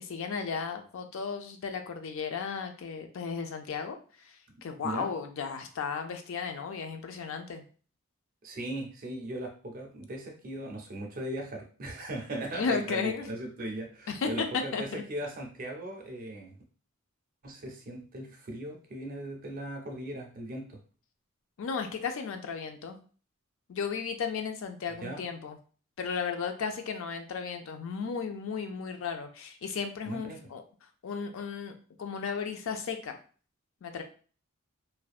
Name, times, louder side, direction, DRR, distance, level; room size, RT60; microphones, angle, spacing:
voice 1, 0.0-4.0 4.2-7.6 12.5-13.3 14.1-15.0 21.6-23.0 23.7-25.6 26.0-30.6 31.0-33.1 33.8-34.0, left 5 dB, 60° left, 6 dB, 0.4 m, -34 dB
voice 2, 8.4-16.5 17.4-20.8 25.0-25.2 30.1-30.4, right 1 dB, 40° right, 2 dB, 0.4 m, -38 dB
2.5 x 2.1 x 2.3 m, 0.40 s
head